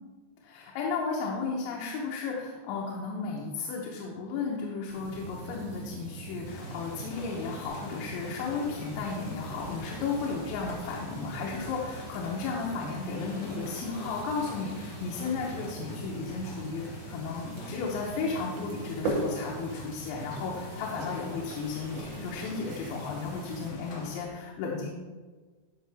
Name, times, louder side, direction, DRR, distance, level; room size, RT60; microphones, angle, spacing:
voice 1, 0.4-24.9, left 4 dB, 90° left, -2 dB, 3.3 m, -34 dB
sound 1, 4.9-23.7, right 2 dB, 85° right, 4.0 m, -40 dB
sound 2, 6.4-24.3, left 3 dB, 65° left, 3.0 m, -46 dB
12.0 x 5.9 x 3.4 m, 1.4 s
omnidirectional pair, 5.1 m